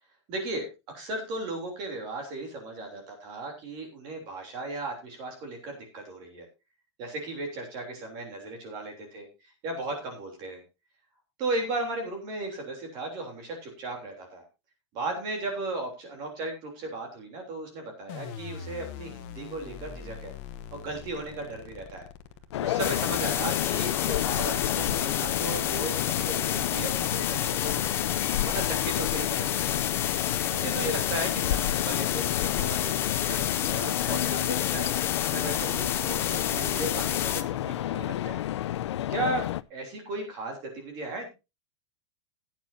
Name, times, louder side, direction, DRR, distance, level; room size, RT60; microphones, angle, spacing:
voice 1, 0.3-0.7 0.9-6.4 7.0-9.3 9.6-10.6 11.4-14.4 14.9-20.3 20.7-22.1 22.6-28.1 28.4-29.8 30.5-34.9 35.2-38.4 39.1-39.4 39.7-41.3, right 2 dB, 30° right, 2 dB, 3.3 m, -36 dB
sound 1, 18.1-23.1, left 8 dB, 35° left, 1.0 m, -43 dB
sound 2, 22.5-39.6, left 12 dB, 75° left, 0.6 m, -30 dB
sound 3, 22.8-37.4, left 10 dB, 15° left, 0.6 m, -30 dB
17.0 x 9.1 x 2.7 m, 0.27 s
supercardioid pair, 175°, 15 cm